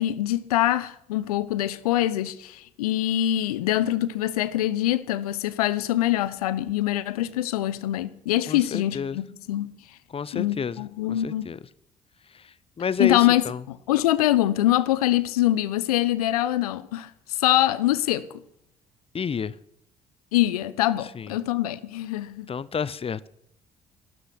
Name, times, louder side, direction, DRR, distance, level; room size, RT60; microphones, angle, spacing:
voice 1, 0.0-9.7 10.3-11.5 13.0-18.2 20.3-22.5, left 14 dB, 75° left, 0.7 m, -24 dB
voice 2, 8.5-9.2 10.1-11.6 12.8-13.6 19.1-19.5 21.1-21.3 22.5-23.3, left 6 dB, 30° left, 0.7 m, -30 dB
14.0 x 12.5 x 6.0 m
figure-of-eight pair, 45°, 19 cm